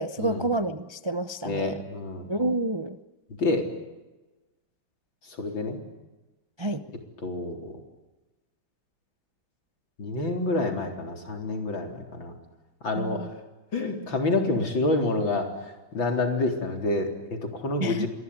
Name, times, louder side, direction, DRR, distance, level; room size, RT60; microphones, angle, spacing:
voice 1, 0.0-1.8 2.3-3.0 6.6-6.8 13.0-13.3 17.8-18.1, right 2 dB, 35° right, 10 dB, 0.4 m, -29 dB
voice 2, 1.4-2.3 3.4-3.7 5.4-5.8 7.2-7.8 10.0-12.3 12.8-13.3 13.7-18.1, left 2 dB, 75° left, 3 dB, 4.7 m, -28 dB
26.5 x 21.0 x 9.8 m, 1.1 s
omnidirectional pair, 2.1 m